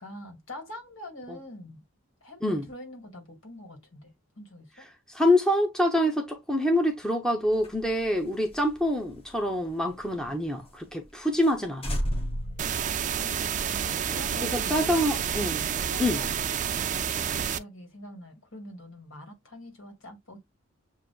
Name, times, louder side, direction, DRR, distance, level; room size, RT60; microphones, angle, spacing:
voice 1, 0.0-1.8 2.2-4.9 12.0-15.0 15.9-16.3 16.7-20.4, left 1 dB, 70° left, 2.1 m, -45 dB
voice 2, 5.1-12.0 14.4-15.7 16.0-16.2, left 1 dB, 5° left, 0.7 m, -26 dB
sound 1, 7.5-10.3 10.6-10.7 11.1-11.2 11.4-11.6 11.8-13.5, equal, 30° left, 0.9 m, -34 dB
sound 2, 12.6-17.6, right 8 dB, 40° right, 0.4 m, -29 dB
7.6 x 2.6 x 2.3 m
head